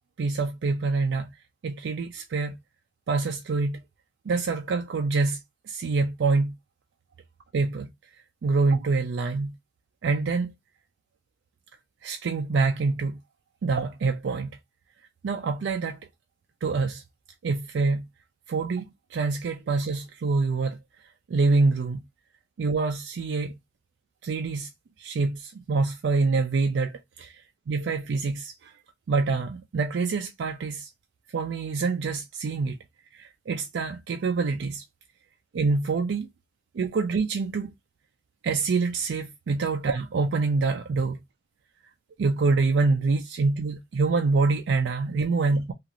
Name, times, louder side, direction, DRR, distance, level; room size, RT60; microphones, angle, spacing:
voice 1, 0.2-1.3 1.6-2.5 3.1-3.8 4.3-6.6 7.5-7.9 8.4-9.5 10.0-10.5 12.0-13.2 13.6-14.6 15.2-16.0 16.6-17.0 17.4-18.1 18.5-20.8 21.3-22.0 22.6-23.5 24.2-24.7 25.0-28.8 29.1-30.9 31.3-32.8 33.1-34.8 35.5-36.3 36.7-37.7 38.4-41.2 42.2-45.7, right 3 dB, 85° right, 0.4 m, -26 dB
2.9 x 2.4 x 2.5 m
head